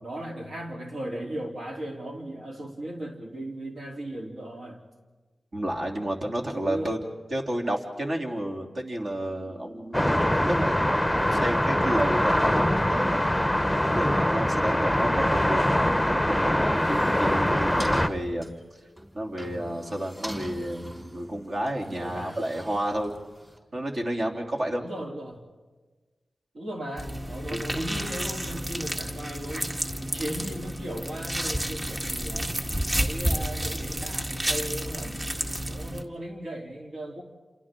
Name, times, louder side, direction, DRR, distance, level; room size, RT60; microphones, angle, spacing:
voice 1, 0.0-4.8 6.5-6.9 21.8-22.4 24.7-25.4 26.5-29.7 30.0-32.5 32.9-35.4 35.7-37.2, right 1 dB, 75° right, -1 dB, 3.3 m, -37 dB
voice 2, 5.5-7.0 7.3-13.3 13.9-15.8 16.1-18.5 19.1-23.1 23.7-24.8 27.5-27.6, right 1 dB, 60° right, -1 dB, 3.1 m, -31 dB
sound 1, 9.9-18.1, left 1 dB, 5° left, 0.8 m, -23 dB
sound 2, 16.6-23.6, equal, 15° right, 4.4 m, -43 dB
sound 3, 27.0-36.0, equal, 35° right, 1.9 m, -31 dB
28.5 x 28.0 x 3.8 m, 1.3 s
cardioid pair, 45°, 0 cm